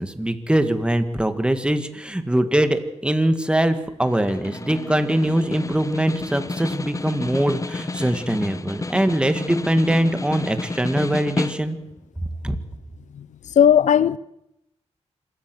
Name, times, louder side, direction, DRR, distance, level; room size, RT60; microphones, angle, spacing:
voice 1, 0.0-11.8 12.4-12.6, right 1 dB, 10° right, 2.0 m, -22 dB
Snare drum, 4.0-11.9, left 3 dB, 25° left, 0.8 m, -31 dB
voice 2, 13.6-14.2, left 9 dB, 90° left, 0.7 m, -16 dB
26.5 x 14.0 x 7.9 m
cardioid pair, 80°, 12 cm